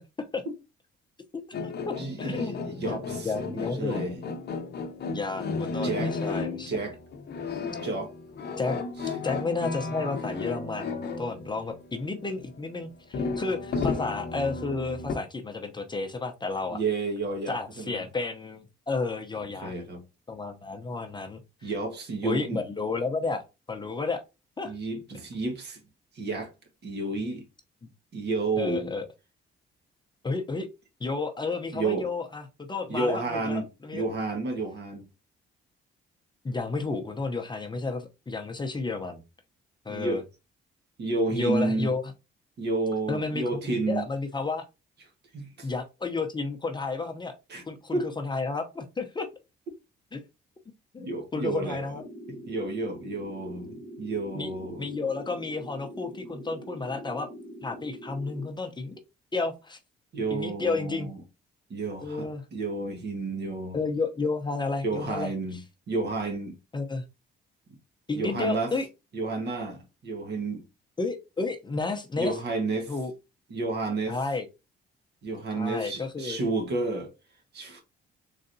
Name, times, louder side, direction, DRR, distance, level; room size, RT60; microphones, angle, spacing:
voice 1, 1.3-2.6 2.9-4.0 5.1-6.7 8.6-8.8 9.2-16.8 17.5-19.7 20.3-21.7 22.2-23.4 23.7-24.2 24.6-24.7 28.6-29.1 30.2-30.7 31.0-34.0 36.4-39.2 39.8-40.2 41.3-42.1 43.1-43.6 43.9-44.6 45.6-47.3 47.7-49.3 50.1-50.2 50.9-52.0 54.3-54.5 54.8-57.3 57.6-59.0 59.3-59.8 60.3-61.1 62.0-62.4 63.7-65.6 66.7-67.0 68.1-68.9 71.0-72.4 72.9-73.1 74.1-74.5 75.6-76.4, left 3 dB, 20° left, 0.7 m, -32 dB
sound 1, 1.5-12.8 13.1-15.2, left 4 dB, 55° left, 0.8 m, -34 dB
voice 2, 2.0-4.1 5.8-6.1 6.7-7.0 7.8-8.1 9.0-9.1 16.7-18.0 19.5-20.0 21.6-22.6 24.6-25.8 26.1-26.5 26.8-27.4 28.1-28.9 31.7-32.1 32.9-33.7 33.9-35.1 39.9-40.2 41.0-41.9 42.6-44.0 45.3-45.7 47.5-47.6 47.9-48.1 51.0-52.0 52.3-54.8 60.1-61.2 61.7-63.8 64.8-65.6 65.9-66.5 68.1-68.7 69.1-70.6 72.2-72.9 73.5-74.2 75.2-77.1 77.5-77.8, right 3 dB, 55° right, 1.4 m, -31 dB
sound 2, 51.9-58.5, equal, 40° right, 1.1 m, -43 dB
3.8 x 3.2 x 2.6 m
cardioid pair, 90°, 20 cm